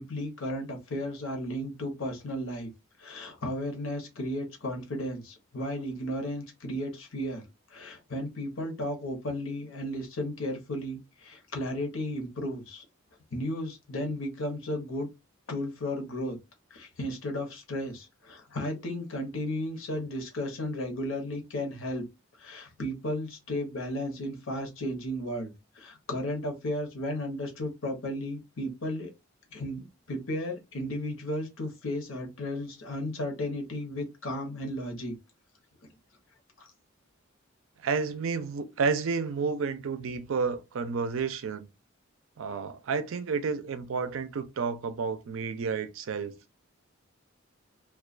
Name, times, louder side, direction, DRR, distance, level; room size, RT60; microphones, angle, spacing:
voice 1, 0.0-2.7 3.0-7.4 7.7-12.8 13.3-15.1 15.5-16.4 16.7-22.0 22.4-29.1 29.5-35.1 36.6-36.7, left 1 dB, 75° left, 0.8 m, -34 dB
voice 2, 37.8-41.7 42.4-46.4, right 5 dB, 75° right, 0.4 m, -31 dB
2.3 x 2.2 x 2.4 m
head